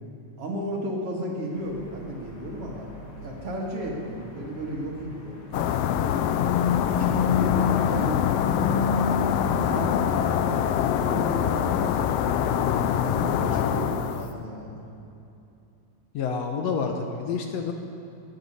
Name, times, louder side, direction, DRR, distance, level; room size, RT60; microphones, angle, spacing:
voice 1, 0.4-2.9 3.2-5.8 6.5-8.9 9.6-12.0 12.3-12.5 13.1-14.8, equal, 55° right, -2 dB, 2.6 m, -34 dB
sound 1, 1.5-7.9, left 2 dB, 40° left, 2.1 m, -46 dB
sound 2, 5.5-14.3, left 8 dB, 90° left, 1.4 m, -24 dB
voice 2, 16.1-17.7, left 5 dB, 70° left, 4 dB, 1.8 m, -28 dB
18.0 x 9.3 x 5.5 m, 2.7 s
omnidirectional pair, 3.4 m